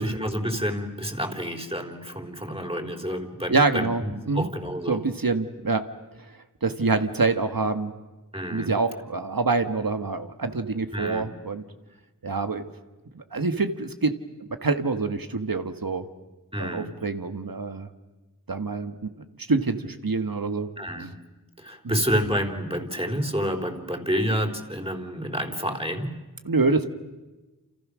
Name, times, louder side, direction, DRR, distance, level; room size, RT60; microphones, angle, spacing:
voice 1, 0.0-5.0 8.3-8.7 10.9-11.3 16.5-16.9 20.8-21.2 21.6-26.2, equal, 15° right, 3 dB, 3.6 m, -29 dB
voice 2, 3.5-4.5 4.9-5.9 6.3-7.9 8.5-11.6 12.2-12.6 13.1-14.1 14.4-16.1 16.6-17.9 18.5-19.1 19.4-20.7 21.0-21.1 21.8-22.0 26.5-26.9, right 3 dB, 90° right, 9 dB, 1.7 m, -26 dB
29.5 x 29.0 x 6.4 m, 1.1 s
wide cardioid pair, 45°, 34 cm